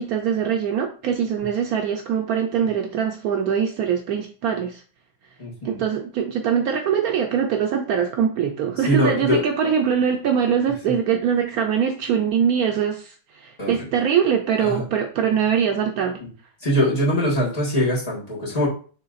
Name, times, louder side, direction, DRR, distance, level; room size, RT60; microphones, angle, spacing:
voice 1, 0.0-4.8 5.6-16.2, right 7 dB, 90° right, 4 dB, 0.8 m, -22 dB
voice 2, 5.4-5.8 8.9-9.4 13.6-13.8 14.6-14.8 16.2-16.3 16.6-18.7, equal, 20° left, -6 dB, 1.6 m, -22 dB
6.8 x 3.2 x 2.4 m, 0.40 s
omnidirectional pair, 2.1 m